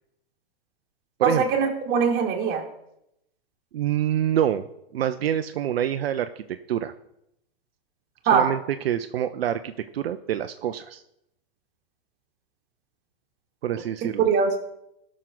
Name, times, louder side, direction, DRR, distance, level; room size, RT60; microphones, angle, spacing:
voice 1, 1.2-2.6 8.3-8.4 14.3-14.6, right 6 dB, 35° right, 1 dB, 2.4 m, -21 dB
voice 2, 3.7-6.9 8.3-11.0 13.6-14.3, right 10 dB, 75° right, 9 dB, 0.7 m, -26 dB
17.0 x 6.3 x 3.9 m, 0.80 s
hypercardioid pair, 125°, 30 cm